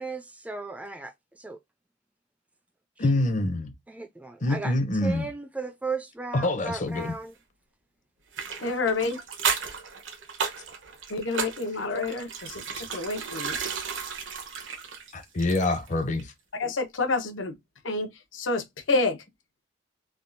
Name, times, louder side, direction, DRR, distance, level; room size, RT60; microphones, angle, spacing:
voice 1, 0.0-1.6 3.9-4.7 5.0-7.3, right 3 dB, 10° right, 0.3 m, -36 dB
voice 2, 3.0-3.7 4.4-5.3 6.3-7.1 15.1-16.3, left 2 dB, 40° left, 0.6 m, -26 dB
sound 1, 8.3-15.9 16.2-16.3, right 6 dB, 90° right, 0.9 m, -34 dB
voice 3, 8.6-9.2 11.1-13.5 16.6-17.5 17.8-19.2, left 3 dB, 85° left, 0.8 m, -28 dB
3.5 x 2.3 x 2.5 m
head